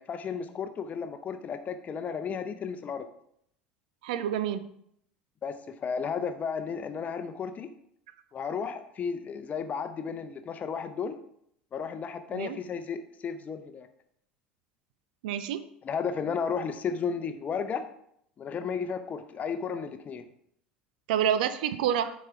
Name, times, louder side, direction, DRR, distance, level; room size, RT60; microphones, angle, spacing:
voice 1, 0.0-3.1 5.4-7.7 8.3-11.2 11.7-13.9 15.8-17.8 18.4-20.3, left 6 dB, 30° left, 9 dB, 0.7 m, -33 dB
voice 2, 4.0-4.6 12.3-12.6 15.2-15.7 21.1-22.1, right 9 dB, 60° right, 12 dB, 0.5 m, -28 dB
10.0 x 4.3 x 3.5 m, 0.72 s
figure-of-eight pair, 70°, 5 cm